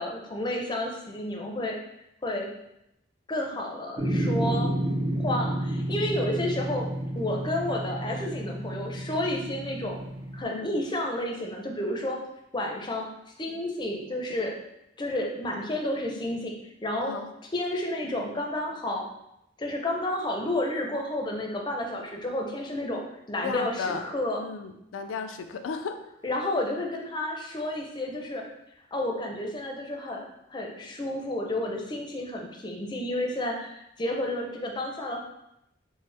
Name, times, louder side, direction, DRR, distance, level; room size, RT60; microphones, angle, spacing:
voice 1, 0.0-1.8 2.2-2.5 3.3-4.7 5.2-6.9 7.1-10.0 10.3-12.2 12.5-13.1 13.4-14.5 15.0-16.5 16.8-17.1 17.5-19.0 19.6-23.0 23.3-24.4 26.2-28.4 28.9-30.2 30.5-35.2, left 1 dB, 25° left, 1 dB, 0.5 m, -31 dB
sound 1, 4.0-10.4, right 1 dB, 25° right, 0.5 m, -30 dB
voice 2, 10.5-10.8 17.0-17.3 23.4-24.0 24.4-26.0, left 5 dB, 90° left, 7 dB, 0.4 m, -34 dB
4.2 x 2.0 x 3.2 m, 0.83 s
head